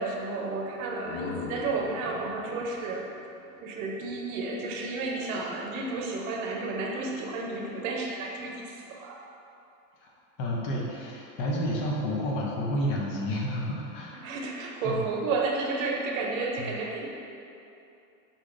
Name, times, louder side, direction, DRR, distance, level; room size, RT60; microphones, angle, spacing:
voice 1, 0.0-3.0 3.6-9.2 14.2-17.1, right 3 dB, 60° right, -1 dB, 0.8 m, -32 dB
sound 1, 0.7-4.4, left 4 dB, 25° left, 0.3 m, -40 dB
voice 2, 10.4-14.3 14.8-15.0 16.6-16.7, equal, 45° left, -3 dB, 0.9 m, -30 dB
4.1 x 2.9 x 3.7 m, 2.7 s
supercardioid pair, 120°, 46 cm